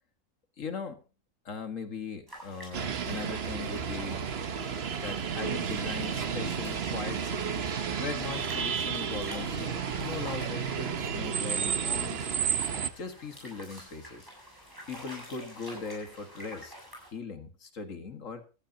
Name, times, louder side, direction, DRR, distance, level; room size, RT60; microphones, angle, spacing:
voice 1, 0.6-1.0 1.5-4.2 5.0-12.3 13.0-14.3 14.9-16.7 17.1-18.4, left 4 dB, 80° left, 8 dB, 2.1 m, -39 dB
sound 1, 2.3-17.1, right 1 dB, 15° right, 7.7 m, -49 dB
sound 2, 2.7-12.9, right 7 dB, 55° right, 1.2 m, -32 dB
17.5 x 14.5 x 2.8 m, 0.32 s
omnidirectional pair, 1.3 m